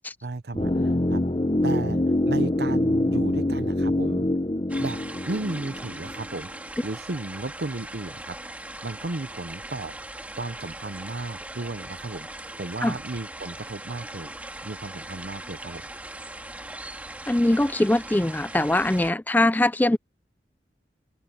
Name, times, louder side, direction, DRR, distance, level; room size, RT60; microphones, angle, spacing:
voice 1, 0.2-1.2 1.6-4.3 4.8-6.5 6.8-8.4 8.8-10.0 10.4-12.3 12.6-14.3 14.6-15.9, right 2 dB, 70° right, 0.9 m, -34 dB
sound 1, 0.5-6.6 6.8-6.9, left 1 dB, 30° left, 1.0 m, -25 dB
sound 2, 4.7-19.1, right 1 dB, 10° right, 2.0 m, -40 dB
voice 2, 17.3-20.0, left 1 dB, 10° left, 0.4 m, -22 dB
head